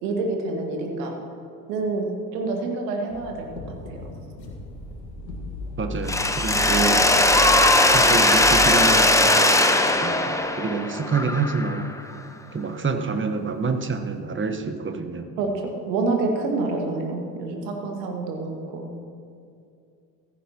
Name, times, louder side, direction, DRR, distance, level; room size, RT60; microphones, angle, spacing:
voice 1, 0.0-1.2 1.7-4.1 15.4-18.9, right 3 dB, 75° right, 2 dB, 1.9 m, -27 dB
sound 1, 3.1-8.7, right 1 dB, 85° left, 1.8 m, -35 dB
voice 2, 5.8-7.1 7.9-9.6 10.0-11.9 12.5-15.3, right 4 dB, 25° right, 7 dB, 1.2 m, -27 dB
Mechanisms, 6.1-11.9, left 1 dB, 5° left, 0.9 m, -19 dB
15.0 x 13.5 x 3.0 m, 2.5 s
hypercardioid pair, 60°, 50 cm